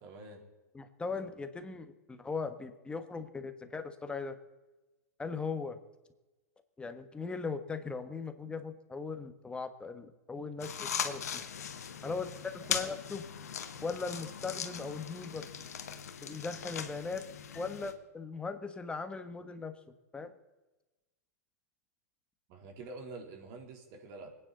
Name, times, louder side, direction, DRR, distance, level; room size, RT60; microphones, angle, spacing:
voice 1, 0.0-0.4 12.0-12.3 12.6-12.8 22.5-24.3, right 3 dB, 45° right, 2 dB, 3.6 m, -47 dB
voice 2, 0.7-4.4 5.2-5.8 6.8-11.4 12.0-12.3 12.7-13.2 13.8-15.5 16.2-17.2 17.5-19.7 20.1-20.3, left 4 dB, 10° left, 8 dB, 1.4 m, -39 dB
sound 1, 10.6-17.9, left 8 dB, 75° left, 1.3 m, -39 dB
25.5 x 9.5 x 4.1 m, 1.1 s
hypercardioid pair, 105°, 9 cm